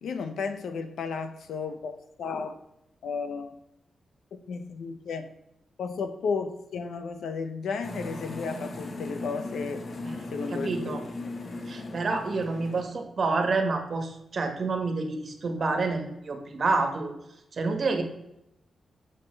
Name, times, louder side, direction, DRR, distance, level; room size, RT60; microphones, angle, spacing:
voice 1, 0.0-2.5 3.0-3.6 4.3-5.3 5.8-9.9 10.3-11.0, left 5 dB, 85° left, 0.7 m, -33 dB
sound 1, 7.8-12.8, left 2 dB, 50° left, 1.0 m, -37 dB
voice 2, 10.0-11.0 11.7-17.1 17.5-18.0, right 3 dB, 50° right, 1.5 m, -28 dB
6.6 x 6.4 x 3.3 m
cardioid pair, 85°, 0 cm